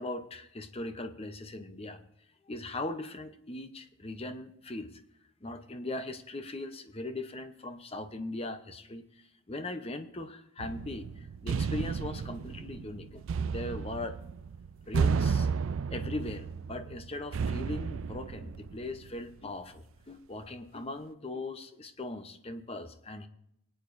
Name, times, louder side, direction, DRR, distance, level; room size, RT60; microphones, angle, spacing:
voice 1, 0.0-2.0 2.5-5.0 5.4-14.2 14.9-15.5 15.9-23.3, left 2 dB, 25° left, 9 dB, 0.7 m, -39 dB
sound 1, 10.6-19.3, right 5 dB, 60° right, 0.3 m, -33 dB
22.5 x 8.8 x 2.6 m, 0.78 s
head